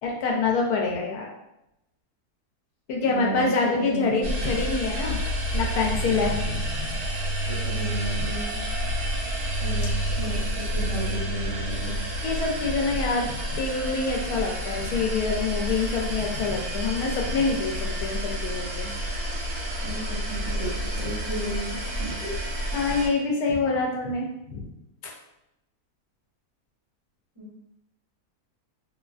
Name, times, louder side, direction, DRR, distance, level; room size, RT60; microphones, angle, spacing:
voice 1, 0.0-1.3 2.9-5.2 5.5-6.9 12.2-18.9 22.7-24.6 25.0-25.1, left 4 dB, 85° left, -1 dB, 1.1 m, -26 dB
voice 2, 3.0-4.6 7.6-8.6 9.6-9.9 10.2-10.4 10.7-11.9 19.8-20.7 21.0-21.8 22.1-22.2 27.3-27.5, right 1 dB, 20° right, -12 dB, 1.4 m, -33 dB
sound 1, 4.2-23.1, equal, 75° right, 1.1 m, -29 dB
2.8 x 2.3 x 2.3 m, 0.86 s
omnidirectional pair, 1.6 m